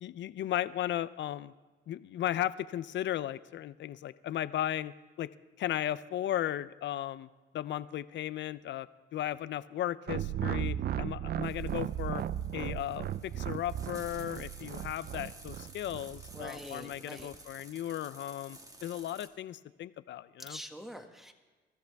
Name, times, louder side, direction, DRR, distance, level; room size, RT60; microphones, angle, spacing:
voice 1, 0.0-1.5 1.9-5.3 5.6-7.3 7.5-12.2 12.5-20.6, left 12 dB, 65° left, 15 dB, 0.6 m, -36 dB
sound 1, 10.1-16.5, right 11 dB, 55° right, 0.5 m, -36 dB
sound 2, 11.4-19.3, right 1 dB, 15° right, 1.7 m, -53 dB
voice 2, 16.3-17.3 20.4-21.3, equal, ahead, 5 dB, 1.7 m, -45 dB
24.5 x 13.5 x 3.5 m, 1.3 s
cardioid pair, 90°, 20 cm